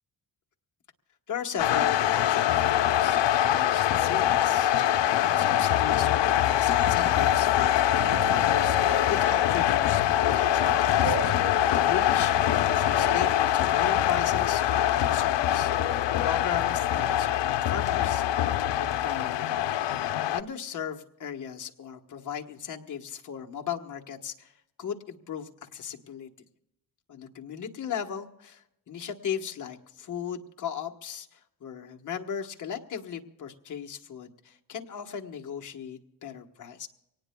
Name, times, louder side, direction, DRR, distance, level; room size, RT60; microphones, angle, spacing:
voice 1, 1.3-4.9 5.3-18.2 18.6-19.9 20.3-24.5 24.8-26.3 27.1-36.9, left 8 dB, 45° left, 2 dB, 1.3 m, -37 dB
sound 1, 1.6-20.4, left 11 dB, 85° left, 0.7 m, -24 dB
sound 2, 6.7-13.7, right 3 dB, 30° right, 3.4 m, -39 dB
24.5 x 19.0 x 2.2 m, 0.86 s
wide cardioid pair, 165°, 41 cm